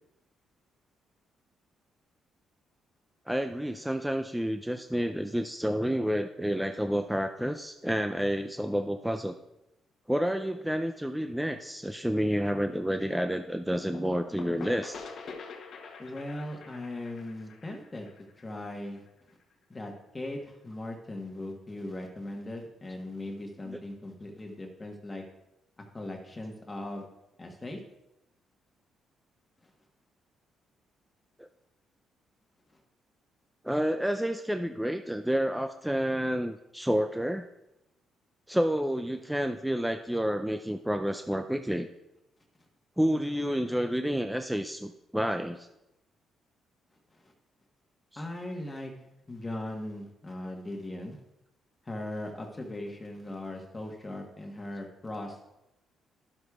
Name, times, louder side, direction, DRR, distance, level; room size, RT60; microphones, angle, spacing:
voice 1, 3.3-9.3 10.1-15.0 23.7-23.8 31.4-31.5 33.6-37.5 38.5-41.9 43.0-45.7 48.1-48.2, equal, 5° right, 6 dB, 0.4 m, -29 dB
sound 1, 13.7-19.3, left 4 dB, 60° left, 1.0 m, -45 dB
voice 2, 16.0-18.1 18.4-19.1 19.7-25.2 25.9-27.1 27.4-27.8 47.1-47.3 48.2-48.9 49.3-51.2 51.8-55.4, left 1 dB, 20° left, 1 dB, 1.2 m, -39 dB
11.0 x 7.8 x 2.4 m, 0.89 s
cardioid pair, 90°, 0 cm